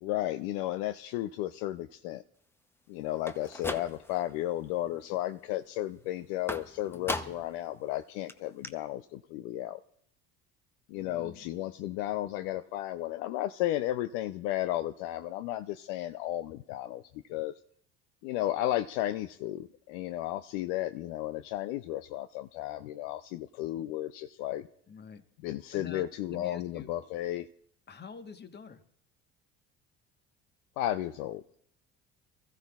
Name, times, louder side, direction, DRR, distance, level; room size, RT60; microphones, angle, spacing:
voice 1, 0.0-2.2 2.9-9.8 10.9-17.0 17.3-17.5 18.2-24.7 25.4-27.5 30.8-31.4, left 14 dB, 70° left, 11 dB, 0.5 m, -34 dB
sound 1, 3.2-4.3 4.7-5.2 6.5-7.6 7.9-8.0 8.3-8.4 8.6-8.7, left 2 dB, 5° left, 0.7 m, -38 dB
voice 2, 6.9-7.3 10.9-11.5 24.9-25.2 25.7-26.9 27.9-28.8, left 5 dB, 30° left, 9 dB, 1.2 m, -47 dB
23.5 x 14.0 x 2.4 m, 0.67 s
hypercardioid pair, 70°, 32 cm